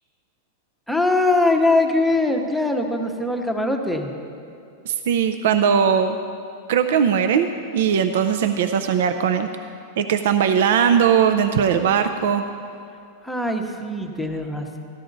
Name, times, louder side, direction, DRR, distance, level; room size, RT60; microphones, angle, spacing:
voice 1, 0.9-4.1 13.2-14.8, left 2 dB, ahead, 2 dB, 0.8 m, -21 dB
voice 2, 4.9-6.2 6.7-7.5 7.7-9.5 10.0-12.4, right 7 dB, 70° right, 8 dB, 0.5 m, -19 dB
13.5 x 11.5 x 4.0 m, 2.6 s
supercardioid pair, 155°, 0 cm